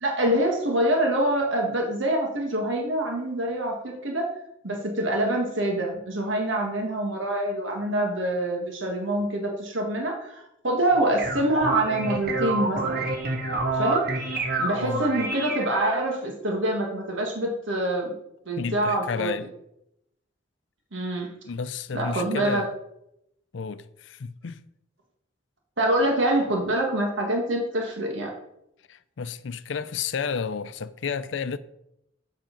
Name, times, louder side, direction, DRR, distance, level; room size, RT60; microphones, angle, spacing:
voice 1, 0.0-4.3 4.6-13.1 13.7-14.1 14.6-18.2 18.5-19.3 20.9-21.3 21.9-22.6 25.8-28.3, right 1 dB, 85° right, 1.7 m, -25 dB
sound 1, 10.9-16.2, right 3 dB, 50° right, 1.4 m, -28 dB
voice 2, 14.8-15.2 18.6-19.5 21.4-22.7 23.5-24.6 28.9-31.6, left 5 dB, 80° left, 0.5 m, -31 dB
7.5 x 6.5 x 5.1 m
head